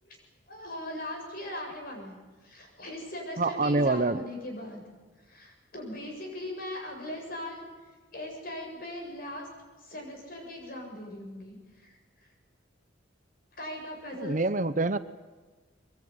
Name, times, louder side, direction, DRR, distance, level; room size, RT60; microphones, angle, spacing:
voice 1, 0.5-4.8 5.3-7.7 8.1-9.5 9.8-11.9 13.6-14.4, left 1 dB, 50° left, 1 dB, 7.9 m, -39 dB
voice 2, 3.4-4.3 14.2-15.0, right 2 dB, 40° right, 13 dB, 0.8 m, -26 dB
23.5 x 22.0 x 9.7 m, 1.3 s
head